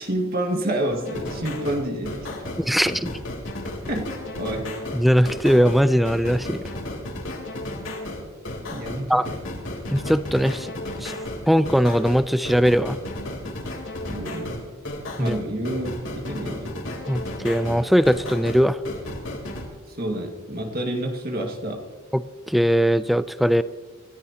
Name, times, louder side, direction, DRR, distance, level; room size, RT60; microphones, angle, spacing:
voice 1, 0.0-2.6 3.9-4.7 8.7-9.4 14.1-14.7 15.2-16.7 19.9-21.9, right 1 dB, 45° right, 2 dB, 1.9 m, -29 dB
sound 1, 1.0-19.7, left 1 dB, 65° left, 3.5 m, -33 dB
voice 2, 2.6-3.2 4.9-6.7 9.1-9.3 9.9-10.7 11.0-11.1 11.5-13.0 15.2-15.4 17.1-18.8 22.1-23.6, equal, ahead, 13 dB, 0.4 m, -20 dB
27.5 x 14.0 x 2.9 m, 1.3 s
head